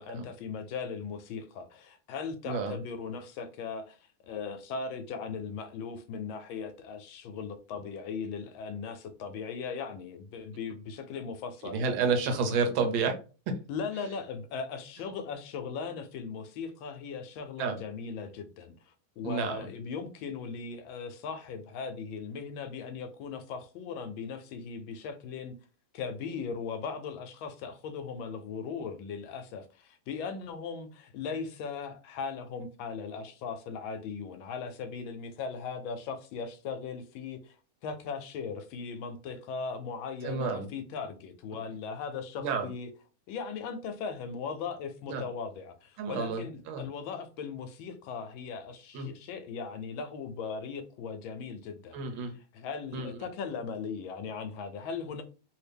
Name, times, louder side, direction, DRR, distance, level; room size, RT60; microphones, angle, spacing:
voice 1, 0.0-11.8 13.7-25.5 25.9-37.6 37.8-42.9 43.3-55.2, left 5 dB, 75° left, 1.3 m, -38 dB
voice 2, 2.4-2.8 11.6-13.1 13.5-13.6 17.6-17.8 19.2-19.7 40.2-40.7 42.4-42.7 45.1-45.3 46.0-46.8 48.9-49.1 51.9-52.4 52.9-53.1, right 4 dB, 75° right, 1.4 m, -30 dB
3.2 x 2.7 x 3.4 m
omnidirectional pair, 2.3 m